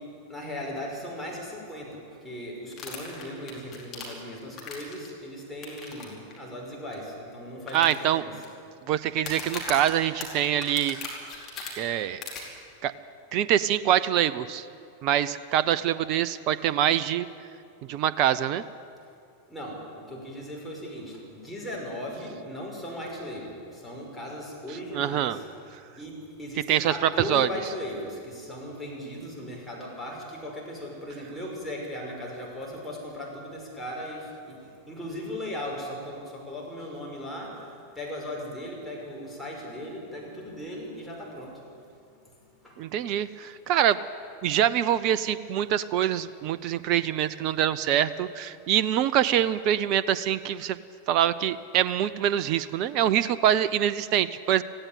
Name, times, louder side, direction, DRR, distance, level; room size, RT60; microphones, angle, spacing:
voice 1, 0.3-1.9 2.2-8.3 19.5-23.5 23.8-25.4 26.0-26.1 26.4-34.2 34.5-34.6 34.9-37.5 38.0-41.5 43.9-44.0, left 1 dB, 5° left, -3 dB, 5.7 m, -37 dB
sound 1, 2.7-5.1 5.6-6.0 6.3-6.4 6.9-7.0 7.7-8.4 9.2-11.7 12.2-12.4, left 5 dB, 30° left, 4.7 m, -38 dB
voice 2, 7.7-8.2 8.9-11.0 11.8-12.2 12.8-12.9 13.3-14.7 15.0-17.3 17.9-18.6 24.9-25.4 26.7-26.9 27.3-27.5 42.8-44.0 44.4-50.8 51.1-54.6, right 11 dB, 40° right, 16 dB, 0.6 m, -24 dB
18.0 x 15.5 x 9.4 m, 2.4 s
figure-of-eight pair, 90°, 0 cm